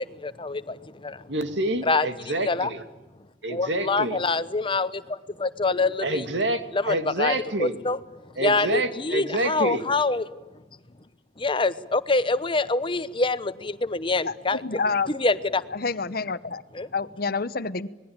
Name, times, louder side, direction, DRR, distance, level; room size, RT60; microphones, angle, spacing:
voice 1, 0.0-1.3 1.8-2.7 3.5-6.2 6.7-7.3 7.6-8.0 8.4-10.3 11.4-14.6 15.1-15.6 16.7-16.9, left 3 dB, 30° left, 14 dB, 1.0 m, -25 dB
voice 2, 1.3-2.8 3.4-4.2 6.0-7.7 8.4-9.8, right 2 dB, 85° right, 8 dB, 2.4 m, -27 dB
voice 3, 14.6-15.1 15.7-16.6 16.9-17.9, left 4 dB, 55° left, 14 dB, 1.1 m, -28 dB
26.5 x 21.0 x 9.0 m, 1.1 s
head